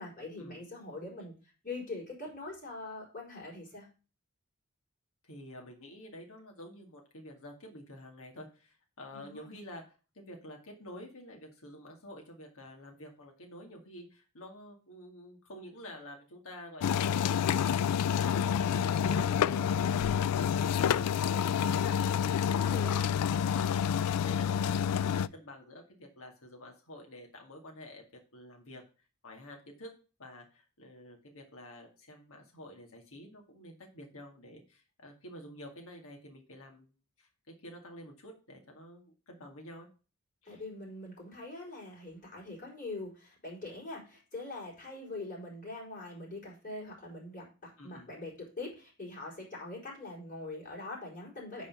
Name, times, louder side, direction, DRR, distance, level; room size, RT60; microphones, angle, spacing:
voice 1, 0.0-3.9 9.1-9.6 22.6-23.3 40.4-51.7, left 2 dB, 40° left, -3 dB, 4.7 m, -43 dB
voice 2, 5.2-9.8 10.1-22.6 22.9-28.0 28.3-28.8 29.2-29.9 30.2-36.9 37.2-39.9 40.4-40.6 47.8-48.1, left 1 dB, 65° left, 1 dB, 2.1 m, -49 dB
sound 1, 16.8-25.3, left 8 dB, 85° left, 0.3 m, -28 dB
9.9 x 4.2 x 5.5 m, 0.34 s
head